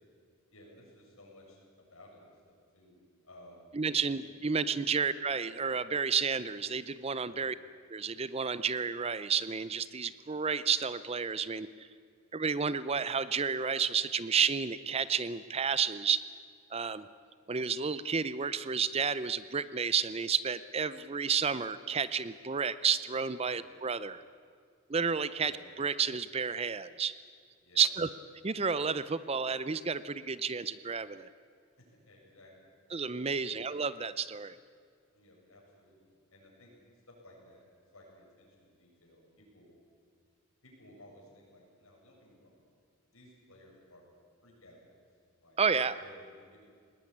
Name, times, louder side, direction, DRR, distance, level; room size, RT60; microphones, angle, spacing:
voice 1, 0.5-3.0 3.2-3.7 4.2-4.3 7.2-7.5 23.4-23.7 25.4-25.6 27.6-27.9 31.8-32.7 33.4-33.6 35.1-36.7 37.1-39.7 40.6-42.6 43.1-44.1 44.4-45.0 45.4-45.6 46.0-46.6, left 1 dB, 75° left, -2 dB, 7.7 m, -57 dB
voice 2, 3.7-7.5 7.9-11.9 12.3-16.2 16.7-17.1 17.5-24.2 24.9-25.5 25.8-27.1 27.8-28.1 28.4-31.3 32.9-34.6 45.6-46.0, right 6 dB, 25° right, 15 dB, 0.5 m, -31 dB
20.5 x 18.5 x 9.9 m, 2.1 s
head